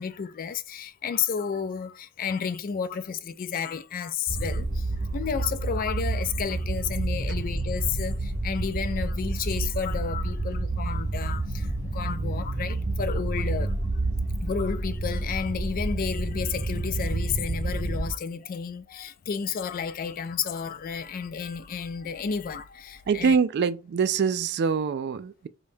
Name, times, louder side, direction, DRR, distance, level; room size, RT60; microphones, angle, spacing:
voice 1, 0.0-13.8 14.4-23.4, left 6 dB, 40° left, 0.3 m, -32 dB
sound 1, 4.3-18.1, right 2 dB, 35° right, 0.8 m, -29 dB
voice 2, 23.1-25.5, right 6 dB, 50° right, 0.3 m, -24 dB
5.1 x 2.3 x 2.6 m
head